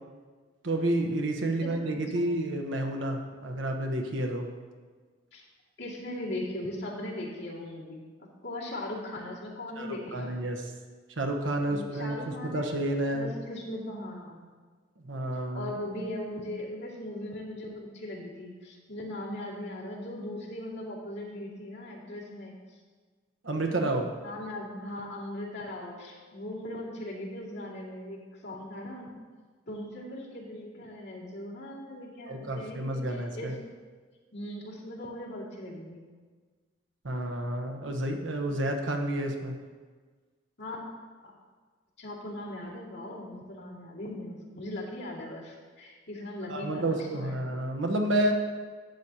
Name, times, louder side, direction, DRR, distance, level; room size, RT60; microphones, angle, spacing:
voice 1, 0.6-4.5 9.8-10.7 11.2-12.2 12.4-13.3 15.0-15.7 23.4-24.1 32.3-33.5 37.0-39.5 46.5-48.3, right 1 dB, 90° right, 3 dB, 1.1 m, -30 dB
voice 2, 5.8-10.4 11.7-12.7 13.1-14.5 15.5-22.5 23.6-23.9 24.2-29.1 29.7-33.5 34.3-36.1 40.6-40.8 42.0-47.5, left 1 dB, 65° left, -6 dB, 2.3 m, -39 dB
11.5 x 8.1 x 2.9 m, 1.5 s
head